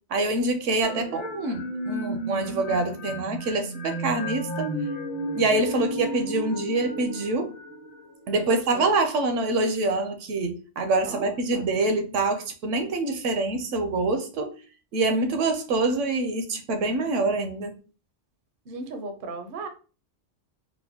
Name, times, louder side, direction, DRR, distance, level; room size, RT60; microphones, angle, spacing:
voice 1, 0.1-4.7 5.3-7.5 8.3-14.5 14.9-17.8, right 2 dB, 75° right, 1.0 m, -25 dB
sound 1, 0.8-8.5, equal, 30° left, 0.6 m, -33 dB
voice 2, 5.7-6.0 8.3-8.9 11.0-11.7 18.7-19.7, right 2 dB, 55° right, 0.6 m, -36 dB
4.2 x 2.1 x 2.7 m
omnidirectional pair, 1.3 m